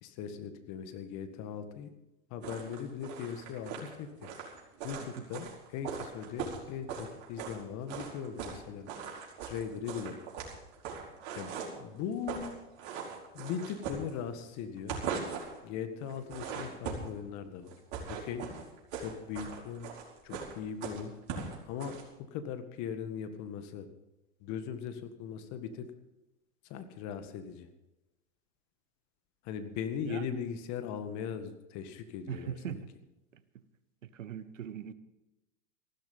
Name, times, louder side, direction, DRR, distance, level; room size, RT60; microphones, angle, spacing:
voice 1, 0.0-1.9 2.3-4.3 4.8-8.9 9.4-10.2 11.3-12.5 12.8-12.9 13.3-15.0 15.6-17.7 18.1-18.5 19.0-19.9 20.2-21.1 21.7-22.0 22.3-23.9 24.4-25.9 26.7-27.7 29.4-32.8, left 7 dB, 50° left, 9 dB, 1.8 m, -39 dB
sound 1, 2.4-7.6 7.9-8.6 8.9-11.8 12.1-12.5 12.8-14.5 14.8-15.6 16.1-17.2 17.7-22.0, right 6 dB, 60° right, 4.9 m, -40 dB
voice 2, 32.3-32.9 33.3-33.4 34.0-34.9, right 9 dB, 90° right, 13 dB, 1.1 m, -40 dB
15.5 x 13.0 x 5.5 m, 0.98 s
hypercardioid pair, 105°, 37 cm